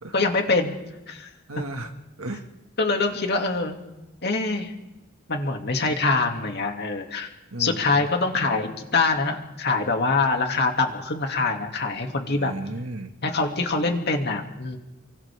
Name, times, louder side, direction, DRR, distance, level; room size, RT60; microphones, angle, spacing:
voice 1, 0.1-0.7 1.1-1.3 2.8-3.8 4.2-4.7 5.3-7.3 7.6-12.5 13.2-14.8, left 3 dB, 55° left, 3 dB, 2.5 m, -24 dB
voice 2, 1.5-1.9 2.2-2.5 7.5-8.1 12.3-13.1, right 2 dB, 85° right, 5 dB, 2.0 m, -34 dB
29.5 x 24.0 x 3.7 m, 0.96 s
head